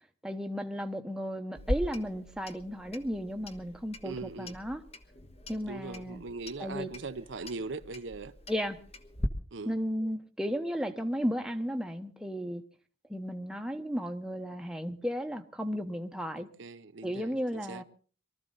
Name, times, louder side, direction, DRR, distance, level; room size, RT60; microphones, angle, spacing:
voice 1, 0.2-4.8 5.5-6.2 6.6-6.9 8.5-8.8 9.6-12.6 13.1-16.5 17.0-17.8, equal, 5° right, 1.0 m, -34 dB
Clock, 1.5-9.3, equal, 30° left, 1.2 m, -40 dB
voice 2, 4.0-4.5 5.7-8.3 9.5-9.7 16.4-17.3 17.7-17.8, right 3 dB, 70° right, 0.7 m, -40 dB
23.5 x 13.5 x 4.0 m
head